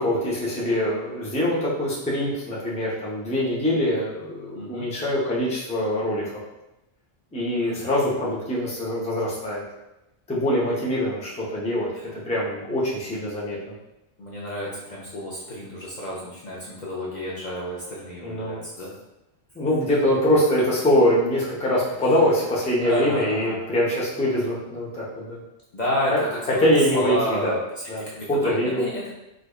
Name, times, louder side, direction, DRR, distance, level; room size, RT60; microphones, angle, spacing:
voice 1, 0.0-6.3 7.3-9.6 10.3-13.7 18.2-18.6 19.5-25.4 26.1-26.2 26.6-27.5 27.9-28.0 28.3-28.9, left 1 dB, 10° left, -6 dB, 0.6 m, -23 dB
voice 2, 4.5-4.9 7.6-7.9 12.0-12.1 14.2-18.9 22.4-22.5 22.8-23.6 25.7-26.6 26.9-27.6 28.0-29.0, equal, 50° left, -6 dB, 0.6 m, -30 dB
4.8 x 2.3 x 2.3 m, 0.94 s
omnidirectional pair, 1.2 m